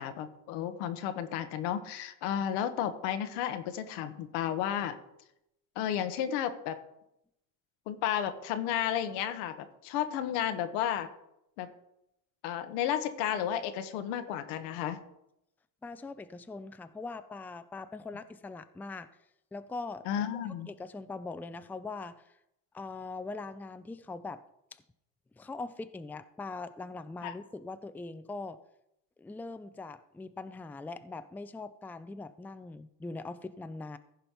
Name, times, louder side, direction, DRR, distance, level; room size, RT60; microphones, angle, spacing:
voice 1, 0.0-5.0 5.8-6.8 7.9-11.1 11.6-11.7 12.4-15.0 20.1-20.7 27.2-27.3, left 10 dB, 85° left, 9 dB, 1.2 m, -32 dB
voice 2, 15.8-19.1 19.5-22.2 22.7-24.4 24.7-24.8 25.4-28.6 29.2-34.0, left 3 dB, 5° left, 11 dB, 0.4 m, -41 dB
15.0 x 5.2 x 4.5 m, 0.82 s
supercardioid pair, 95°, 40 cm